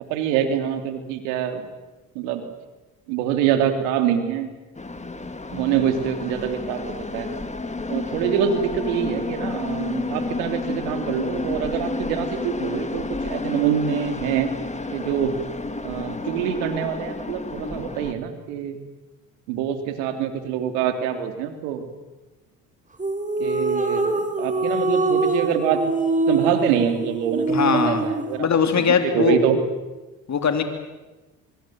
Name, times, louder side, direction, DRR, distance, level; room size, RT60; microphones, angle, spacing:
voice 1, 0.1-1.7 2.1-2.4 3.1-4.5 5.5-7.3 7.9-14.5 14.9-15.3 15.8-18.8 19.5-21.9 23.4-25.8 26.3-28.5 28.8-29.6, right 9 dB, 85° right, 7 dB, 3.2 m, -25 dB
sound 1, 4.8-18.1, left 3 dB, 15° left, 2.4 m, -30 dB
sound 2, 23.0-28.4, right 2 dB, 20° right, 4.6 m, -24 dB
voice 2, 27.5-28.1 28.4-29.4 30.3-30.6, left 6 dB, 40° left, 7 dB, 3.4 m, -20 dB
24.5 x 24.0 x 7.8 m, 1.1 s
supercardioid pair, 70°, 40 cm